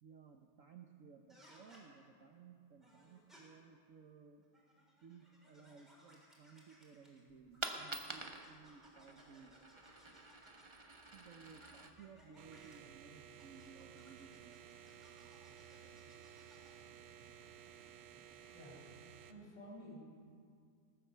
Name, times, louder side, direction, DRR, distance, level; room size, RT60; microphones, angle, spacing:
voice 1, 0.0-4.4 5.0-9.6 11.1-14.6, right 6 dB, 70° right, 4 dB, 0.7 m, -59 dB
sound 1, 1.3-1.8 2.8-3.4 4.4-7.2 7.5-10.8 11.4-12.8 13.4-16.8, equal, ahead, 3.6 m, -65 dB
Coin (dropping), 7.3-13.3, right 2 dB, 40° right, 0.4 m, -49 dB
sound 2, 12.4-19.3, right 8 dB, 85° right, 1.8 m, -56 dB
voice 2, 18.5-18.8 19.3-20.0, equal, 85° left, -4 dB, 5.6 m, -52 dB
19.5 x 9.4 x 6.8 m, 2.3 s
omnidirectional pair, 2.4 m